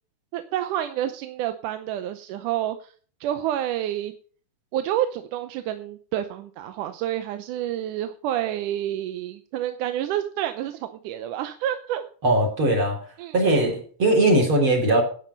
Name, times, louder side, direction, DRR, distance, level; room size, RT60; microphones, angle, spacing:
voice 1, 0.3-2.9 3.2-4.1 4.7-12.0 13.2-13.3, right 12 dB, 80° right, 9 dB, 2.2 m, -29 dB
voice 2, 12.2-13.0 13.3-15.0, right 1 dB, 40° right, 1 dB, 4.3 m, -20 dB
11.5 x 9.3 x 5.3 m, 0.43 s
omnidirectional pair, 3.7 m